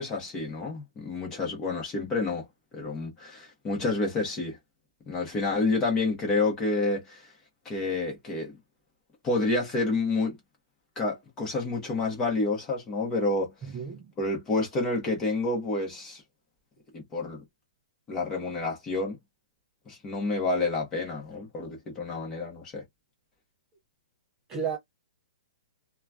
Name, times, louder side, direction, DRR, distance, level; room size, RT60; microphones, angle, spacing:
voice 1, 0.0-2.5 2.7-4.6 5.1-7.3 7.6-8.6 9.2-10.4 11.0-13.5 14.2-16.2 16.9-17.4 18.1-19.2 19.9-22.8, left 3 dB, 15° left, 1.1 m, -29 dB
voice 2, 13.6-14.1 24.5-24.8, right 7 dB, 15° right, 0.4 m, -32 dB
2.9 x 2.3 x 2.4 m
hypercardioid pair, 170°, 4 cm